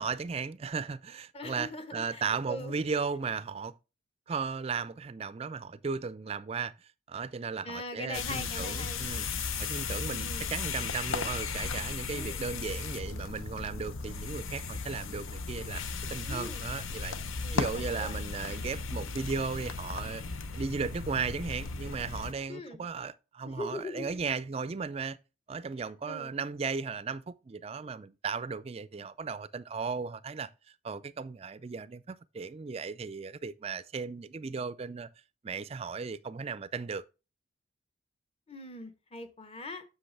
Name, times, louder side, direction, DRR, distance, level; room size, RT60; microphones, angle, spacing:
voice 1, 0.0-3.7 4.3-9.3 9.6-15.8 16.1-17.1 17.5-20.2 20.5-25.2 25.5-30.5 30.8-35.1 35.4-37.0, right 5 dB, 30° right, 0.3 m, -36 dB
voice 2, 1.3-2.7 7.6-9.0 10.1-10.5 12.1-12.5 16.2-16.6 17.4-18.3 22.5-22.8 23.5-24.1 25.8-26.3 29.0-29.1 38.5-39.8, left 1 dB, 30° left, 0.9 m, -41 dB
sound 1, 8.1-22.3, left 4 dB, 85° left, 0.8 m, -36 dB
7.6 x 6.4 x 3.3 m
head